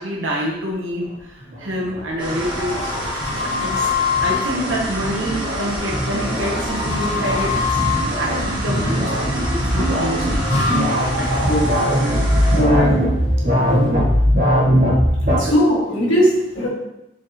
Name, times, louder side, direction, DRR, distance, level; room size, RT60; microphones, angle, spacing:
voice 1, 0.0-3.9 4.2-7.5 7.8-10.8 11.3-11.6 15.4-15.5, equal, 90° right, -3 dB, 1.2 m, -27 dB
sound 1, 1.4-15.4, equal, 50° right, 1.7 m, -21 dB
sound 2, 2.2-4.5 6.0-8.0 10.2-14.2, left 5 dB, 35° left, 0.7 m, -26 dB
sound 3, 2.2-12.6, right 1 dB, 25° right, 1.0 m, -28 dB
voice 2, 12.5-13.0 15.5-16.7, equal, 85° left, -5 dB, 1.6 m, -17 dB
5.1 x 3.8 x 2.8 m, 0.86 s
head